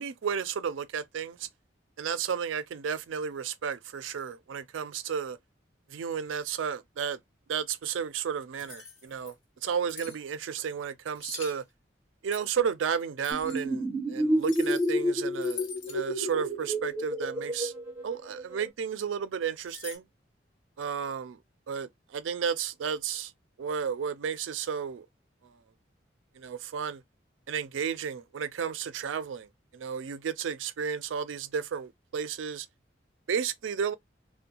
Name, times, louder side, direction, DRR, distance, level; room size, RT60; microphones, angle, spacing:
voice 1, 0.0-1.5 2.0-5.4 5.9-7.2 7.5-9.3 9.6-11.6 12.2-17.7 18.0-20.0 20.8-21.4 21.7-23.3 23.6-25.1 26.4-27.0 27.5-29.5 29.7-32.7 33.3-33.9, right 7 dB, 90° right, 0.4 m, -33 dB
sound 1, 8.6-9.3 9.9-10.2 11.1-11.6 12.3-12.6 13.2-13.6 14.4-15.0 15.3-16.0 19.6-20.0, left 5 dB, 85° left, 1.0 m, -44 dB
sound 2, 13.3-18.7, equal, 10° right, 0.9 m, -30 dB
2.5 x 2.1 x 2.7 m
head